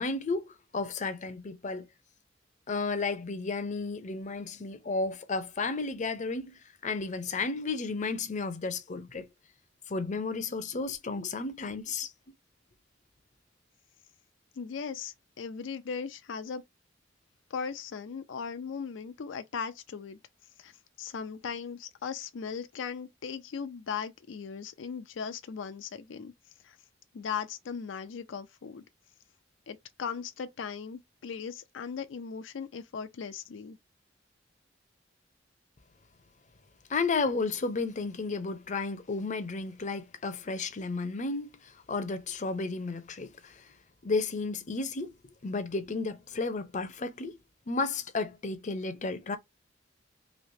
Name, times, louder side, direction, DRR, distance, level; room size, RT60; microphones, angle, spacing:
voice 1, 0.0-1.9 2.7-9.3 9.9-12.1 36.9-43.7 44.0-45.1 45.4-47.4 47.7-49.4, left 3 dB, 40° left, 0.6 m, -33 dB
voice 2, 14.6-16.6 17.5-20.2 20.6-20.7 21.0-26.3 26.6-26.8 27.1-28.8 29.7-33.8, left 6 dB, 85° left, 0.4 m, -38 dB
3.2 x 2.8 x 2.6 m
head